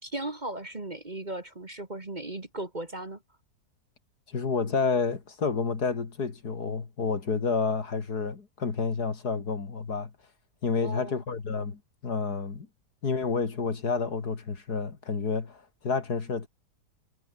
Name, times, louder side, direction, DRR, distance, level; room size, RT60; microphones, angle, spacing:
voice 1, 0.0-3.2 10.8-11.2, right 2 dB, 25° right, 2.0 m, -37 dB
voice 2, 4.3-10.1 10.6-12.7 13.0-16.5, left 4 dB, 65° left, 3.0 m, -29 dB
omnidirectional pair, 1.8 m